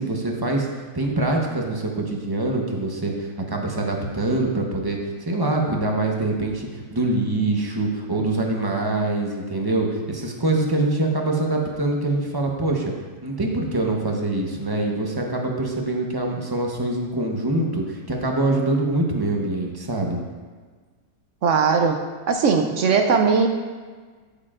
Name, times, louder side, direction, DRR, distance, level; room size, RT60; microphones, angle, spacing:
voice 1, 0.0-12.9 13.2-20.2, right 2 dB, 25° right, 0 dB, 0.6 m, -24 dB
voice 2, 21.4-22.0 22.3-23.5, right 5 dB, 75° right, 5 dB, 0.7 m, -19 dB
14.0 x 6.7 x 2.5 m, 1.5 s
omnidirectional pair, 1.9 m